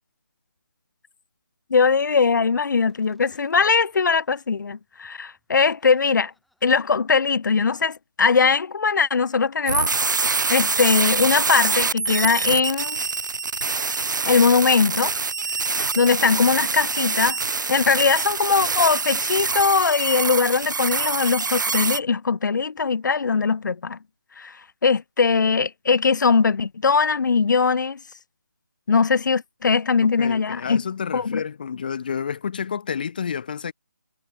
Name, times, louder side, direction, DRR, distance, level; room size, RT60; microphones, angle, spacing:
voice 1, 1.7-6.3 6.6-9.9 10.5-13.0 14.2-15.1 16.0-17.4 17.7-24.0 24.4-24.6 24.8-28.0 28.9-30.8 31.1-31.4, left 5 dB, 80° left, 0.4 m, -20 dB
Laughter, 2.8-8.0, left 1 dB, ahead, 6.0 m, -69 dB
sound 1, 9.7-22.0, right 4 dB, 85° right, 0.7 m, -25 dB
voice 2, 30.2-33.7, left 7 dB, 30° left, 1.2 m, -29 dB
figure-of-eight pair, 175°, 10 cm